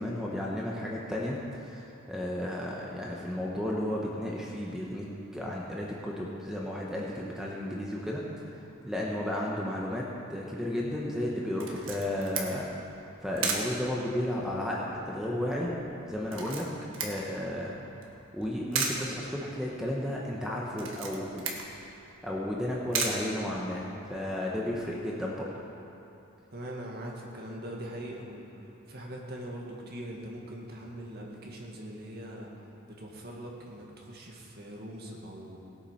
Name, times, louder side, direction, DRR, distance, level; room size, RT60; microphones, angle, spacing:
voice 1, 0.0-1.4 1.6-8.2 8.8-12.7 13.2-15.7 16.0-16.7 17.0-17.7 18.3-21.5 22.2-25.5, left 1 dB, 5° right, -4 dB, 1.2 m, -33 dB
Camera, 11.6-24.1, right 4 dB, 70° right, 1.6 m, -37 dB
voice 2, 26.5-32.5 32.9-35.6, right 1 dB, 50° right, -2 dB, 2.1 m, -42 dB
17.5 x 8.7 x 5.8 m, 2.8 s
head